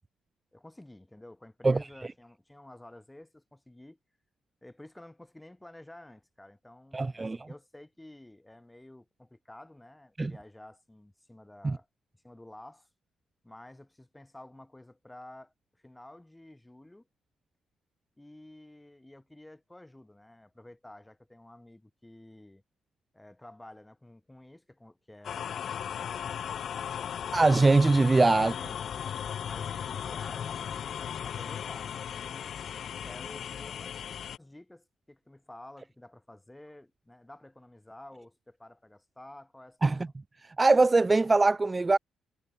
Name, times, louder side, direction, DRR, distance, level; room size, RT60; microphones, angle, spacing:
voice 1, 0.5-4.0 4.6-11.9 12.2-12.9 13.4-17.1 18.2-22.6 23.1-27.3 28.3-28.8 29.5-30.7 30.9-32.5 33.0-33.9 34.4-40.1, left 1 dB, 10° left, 8.0 m, -51 dB
voice 2, 6.9-7.4 10.2-10.3 11.6-11.7 27.3-28.5 39.8-40.0 40.6-42.0, right 3 dB, 20° right, 0.9 m, -22 dB
sound 1, 25.2-34.4, left 8 dB, 60° left, 0.7 m, -36 dB
cardioid pair, 90°, 0 cm